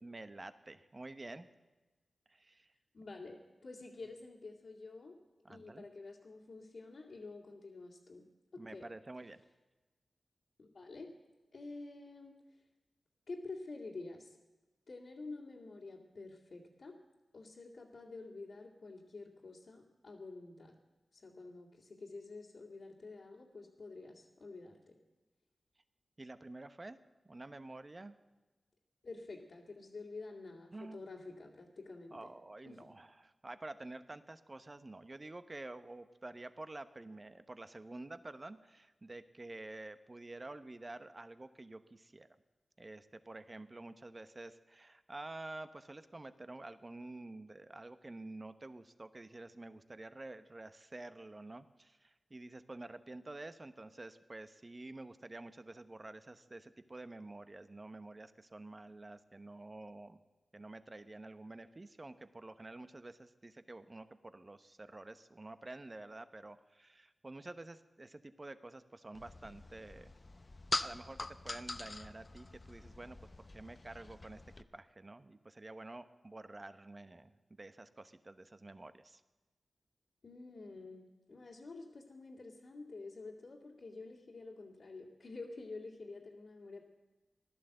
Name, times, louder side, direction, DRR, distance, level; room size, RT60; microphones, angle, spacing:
voice 1, 0.0-1.5 2.3-2.7 5.4-5.9 8.6-9.4 26.2-27.0 27.2-28.2 30.7-31.0 32.1-42.3 42.8-60.2 60.5-70.1 70.8-73.2 73.5-79.2, right 2 dB, 40° right, 11 dB, 1.0 m, -49 dB
voice 2, 2.9-5.2 5.5-8.2 8.5-8.9 10.6-11.1 11.5-12.3 13.3-14.4 14.9-16.9 17.3-20.7 21.1-25.0 29.0-32.3 32.7-32.9 80.2-86.8, left 3 dB, 70° left, -6 dB, 2.4 m, -49 dB
sound 1, 69.1-74.6, left 3 dB, 45° left, 0.7 m, -43 dB
15.5 x 11.5 x 7.9 m, 1.1 s
cardioid pair, 40°, 0 cm